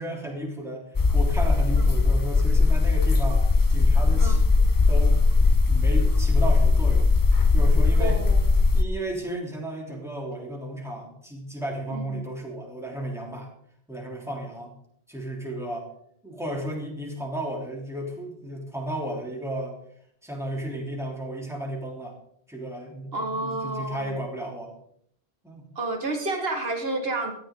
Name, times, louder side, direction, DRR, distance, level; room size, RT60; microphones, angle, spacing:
voice 1, 0.0-4.4 4.9-5.2 5.7-7.1 7.5-8.2 8.7-13.5 13.9-14.7 15.1-15.9 16.2-19.8 20.2-22.1 22.5-24.7 25.4-25.7, right 1 dB, 5° right, -1 dB, 3.2 m, -34 dB
sound 1, 0.9-8.8, left 3 dB, 25° left, 0.5 m, -19 dB
voice 2, 4.2-4.5 8.0-8.5 11.9-12.2 23.1-24.2 25.8-27.3, right 2 dB, 75° right, 5 dB, 2.1 m, -30 dB
17.0 x 12.5 x 3.8 m, 0.67 s
omnidirectional pair, 1.0 m